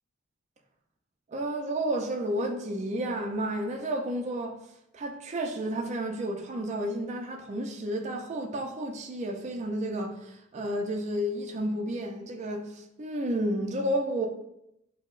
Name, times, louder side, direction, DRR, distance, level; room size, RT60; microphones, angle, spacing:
voice 1, 1.3-4.6 4.9-14.3, right 1 dB, 40° right, 0.4 m, -31 dB
5.4 x 2.0 x 2.4 m
head